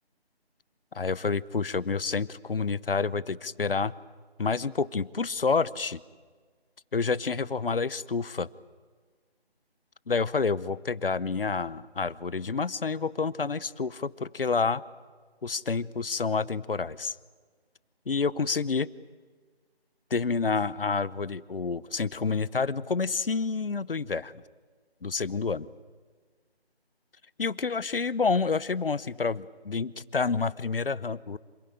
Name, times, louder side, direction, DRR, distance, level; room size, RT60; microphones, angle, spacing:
voice 1, 0.9-3.9 4.4-6.0 6.9-8.5 10.1-14.8 15.4-17.1 18.1-18.9 20.1-24.3 25.0-25.7 27.4-31.4, left 4 dB, 60° left, 20 dB, 0.8 m, -28 dB
26.5 x 16.5 x 10.0 m, 1.5 s
figure-of-eight pair, 165°, 32 cm